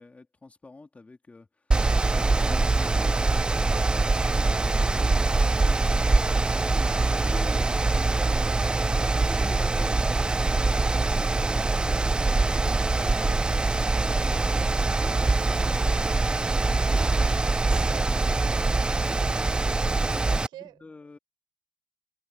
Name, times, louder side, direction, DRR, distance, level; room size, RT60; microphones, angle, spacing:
voice 1, 0.0-1.8 2.1-8.6 9.1-16.7 20.0-21.2, left 3 dB, 15° left, 2.5 m, -47 dB
Mechanical fan, 1.7-20.5, right 3 dB, 10° right, 0.3 m, -23 dB
voice 2, 20.3-20.8, right 14 dB, 70° right, 5.2 m, -49 dB
cardioid pair, 115°, 8 cm